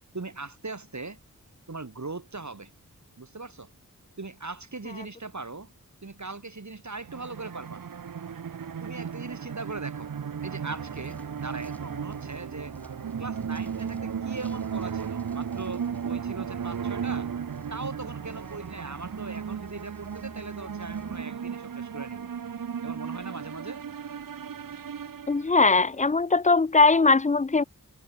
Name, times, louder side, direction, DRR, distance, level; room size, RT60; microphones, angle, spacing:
voice 1, 0.1-1.2 1.7-2.7 3.2-3.7 4.2-5.7 6.0-7.8 8.8-10.1 10.4-12.7 13.2-17.3 17.7-22.3 22.8-23.8, right 3 dB, 55° right, 2.9 m, -39 dB
sound 1, 7.0-25.8, right 7 dB, 75° right, 0.7 m, -35 dB
sound 2, 10.7-21.2, equal, 5° left, 7.2 m, -50 dB
voice 2, 25.3-27.6, left 3 dB, 20° left, 0.4 m, -20 dB
wide cardioid pair, 50°, 34 cm